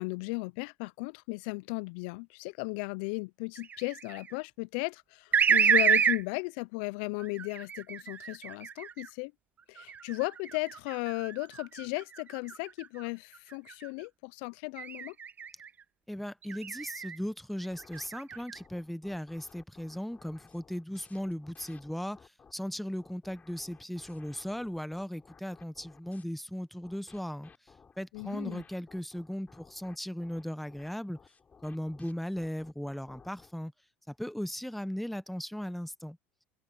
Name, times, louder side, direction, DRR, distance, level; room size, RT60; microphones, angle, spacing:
voice 1, 0.0-9.3 9.7-15.2 28.1-28.6, left 29 dB, 70° left, 0.4 m, -36 dB
sound 1, 3.6-4.3 5.3-6.2 7.2-9.1 9.8-13.1 13.5-13.9 14.8-15.7 16.4-17.2 17.6-18.6, right 7 dB, 30° right, 0.4 m, -29 dB
voice 2, 16.1-27.5 28.0-31.2 31.6-33.7 34.1-36.2, equal, ahead, 1.0 m, -37 dB
sound 2, 17.7-22.5 23.0-26.2 26.8-33.5, left 5 dB, 25° left, 4.4 m, -58 dB
open air
hypercardioid pair, 90°, 6 cm